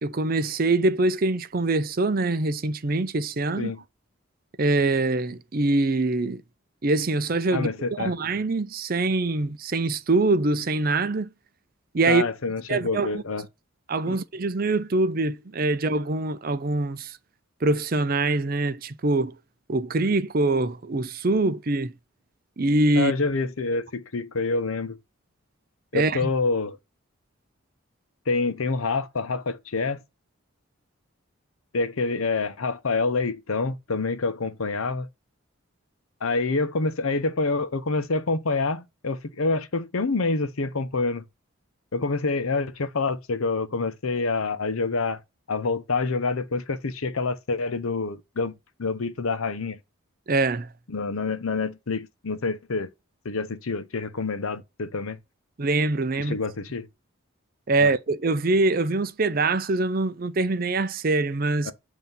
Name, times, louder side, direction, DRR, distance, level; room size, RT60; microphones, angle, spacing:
voice 1, 0.0-3.7 4.6-6.4 6.8-7.7 8.0-11.3 11.9-12.2 12.7-13.2 13.9-17.2 17.6-19.3 19.7-21.9 22.6-23.1 25.9-26.3 50.3-50.7 55.6-56.4 57.7-61.7, right 2 dB, 40° right, 0.5 m, -24 dB
voice 2, 7.5-8.1 12.1-13.4 14.1-14.2 22.9-25.0 25.9-26.8 28.3-30.0 31.7-35.1 36.2-41.2 41.9-45.2 45.5-49.8 50.9-52.9 53.2-55.2 56.3-56.9 57.8-57.9 61.7-61.8, left 3 dB, 80° left, 0.8 m, -27 dB
8.0 x 2.8 x 5.3 m
head